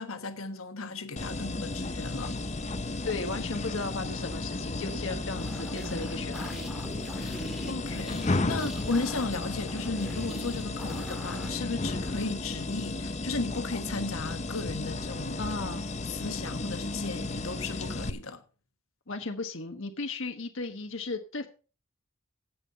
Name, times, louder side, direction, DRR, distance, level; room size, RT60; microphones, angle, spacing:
voice 1, 0.0-2.4 7.2-15.4 16.0-18.4, left 3 dB, 85° left, 1.4 m, -35 dB
sound 1, 1.2-18.1, left 2 dB, 35° left, 0.8 m, -34 dB
voice 2, 3.0-6.7 12.2-12.3 15.4-15.9 19.1-21.5, left 3 dB, 70° left, 1.2 m, -35 dB
sound 2, 5.3-11.6, equal, ahead, 1.8 m, -43 dB
16.0 x 5.6 x 5.6 m
head